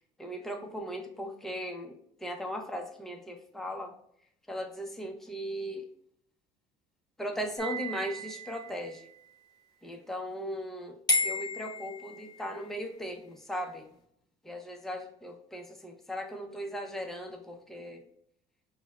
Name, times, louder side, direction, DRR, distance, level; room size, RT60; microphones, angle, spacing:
voice 1, 0.2-3.9 4.5-5.8 7.2-9.1 9.8-11.0 11.2-13.9 14.4-18.0, equal, ahead, 2 dB, 0.7 m, -38 dB
sound 1, 7.6-9.1 11.1-12.7, left 1 dB, 25° left, 1.2 m, -33 dB
5.1 x 2.2 x 2.3 m, 0.71 s
supercardioid pair, 85°, 17 cm